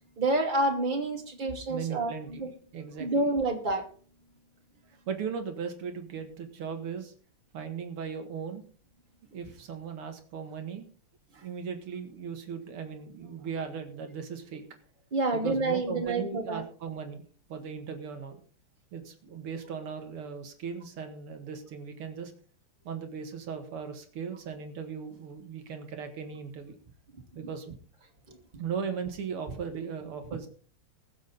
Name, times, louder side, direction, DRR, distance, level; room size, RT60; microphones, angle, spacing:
voice 1, 0.2-2.5 3.0-3.8 15.1-16.6, right 2 dB, 20° right, 2 dB, 2.3 m, -28 dB
voice 2, 1.7-3.3 4.9-7.1 7.5-8.6 9.2-10.8 11.3-14.6 15.3-17.2 17.5-18.4 18.9-22.3 22.8-26.7 27.3-27.8 28.6-30.5, right 6 dB, 90° right, 6 dB, 2.7 m, -38 dB
21.0 x 7.4 x 4.0 m, 0.43 s
omnidirectional pair, 2.4 m